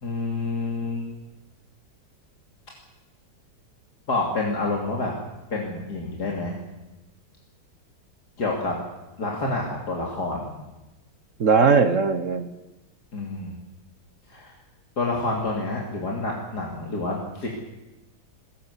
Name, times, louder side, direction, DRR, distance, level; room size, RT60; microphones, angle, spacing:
voice 1, 0.0-1.1 4.1-5.1 5.5-6.5 8.4-8.7 9.2-10.5 13.1-13.5 14.3-14.5 15.0-17.5, left 2 dB, 60° left, -1 dB, 3.4 m, -28 dB
voice 2, 11.4-12.5, right 5 dB, 50° right, 10 dB, 1.3 m, -19 dB
21.5 x 19.0 x 8.3 m, 1.0 s
omnidirectional pair, 1.9 m